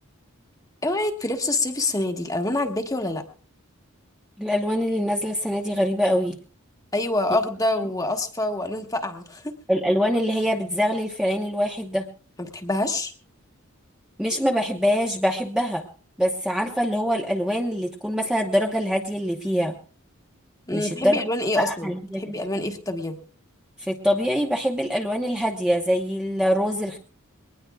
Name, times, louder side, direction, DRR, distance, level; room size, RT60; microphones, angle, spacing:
voice 1, 0.8-3.2 6.9-9.6 12.4-13.1 20.7-23.2, left 2 dB, 15° left, 5 dB, 1.4 m, -26 dB
voice 2, 4.4-6.4 9.7-12.1 14.2-15.8 16.2-19.8 20.7-21.2 21.6-22.4 23.8-27.0, equal, 5° right, 0 dB, 0.9 m, -24 dB
22.0 x 19.5 x 2.4 m, 0.40 s
head